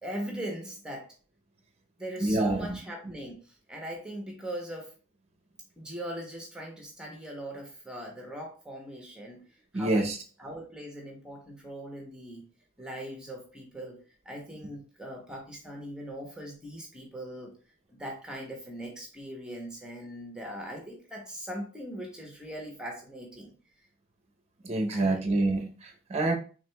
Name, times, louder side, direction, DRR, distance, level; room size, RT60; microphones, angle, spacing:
voice 1, 0.0-1.1 2.0-4.9 5.8-9.4 9.7-10.1 10.4-12.5 12.8-14.0 14.2-17.5 17.9-23.5 24.9-25.2, equal, 5° right, 0 dB, 0.9 m, -40 dB
voice 2, 2.2-2.8 9.7-10.2 24.6-26.3, right 2 dB, 30° right, 3 dB, 0.7 m, -27 dB
4.8 x 3.5 x 2.3 m, 0.37 s
head